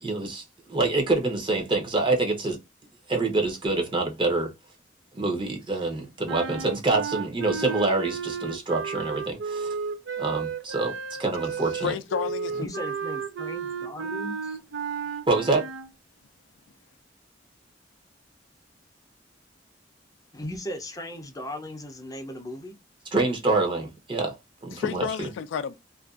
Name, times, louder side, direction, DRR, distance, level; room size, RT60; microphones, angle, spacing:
voice 1, 0.0-2.6 3.1-4.5 5.1-9.7 10.2-11.9 15.3-15.7 23.1-24.3 24.6-25.3, right 3 dB, 25° right, 0.7 m, -26 dB
sound 1, 6.3-15.9, right 6 dB, 70° right, 0.4 m, -33 dB
voice 2, 11.8-12.7 24.7-25.7, left 7 dB, 80° left, 0.3 m, -30 dB
voice 3, 12.5-14.6 20.3-22.7, equal, 20° left, 0.5 m, -37 dB
2.5 x 2.3 x 2.3 m
head